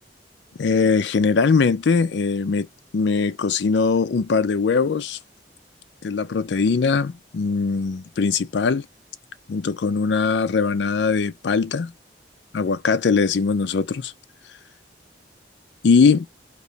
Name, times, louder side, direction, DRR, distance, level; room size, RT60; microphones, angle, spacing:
voice 1, 0.6-2.7 2.9-5.2 6.0-8.8 9.5-11.9 12.5-14.1 15.8-16.3, left 5 dB, 75° left, 0.4 m, -21 dB
3.2 x 2.9 x 2.7 m
head